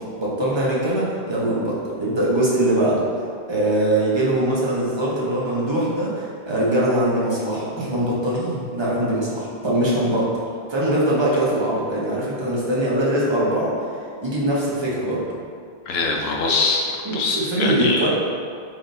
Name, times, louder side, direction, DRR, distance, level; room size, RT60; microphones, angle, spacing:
voice 1, 0.2-3.0 3.5-10.3 10.7-13.9 14.2-15.2 17.0-18.1, right 1 dB, 30° right, -7 dB, 0.7 m, -22 dB
voice 2, 15.9-18.1, left 3 dB, 80° left, 0 dB, 0.8 m, -23 dB
3.9 x 3.4 x 2.6 m, 2.2 s
omnidirectional pair, 1.0 m